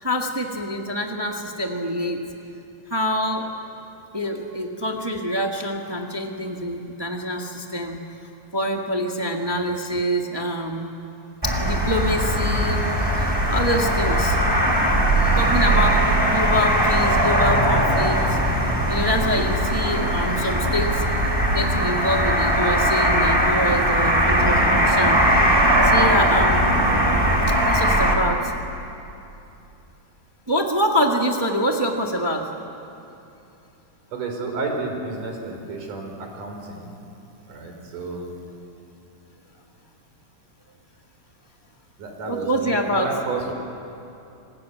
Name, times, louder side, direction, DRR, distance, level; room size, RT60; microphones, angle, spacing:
voice 1, 0.0-2.2 2.9-3.4 4.1-8.0 8.5-10.9 11.4-14.4 15.4-16.0 16.3-18.4 18.9-21.0 21.5-25.2 25.8-26.7 27.6-28.5 30.5-32.5 42.3-43.1, equal, 40° right, 2 dB, 0.3 m, -25 dB
sound 1, 11.4-28.1, right 1 dB, 10° right, 2.7 m, -19 dB
voice 2, 34.1-36.9 37.5-38.3 42.0-43.5, right 3 dB, 80° right, 3 dB, 5.3 m, -31 dB
27.0 x 21.0 x 9.3 m, 2.8 s
omnidirectional pair, 3.6 m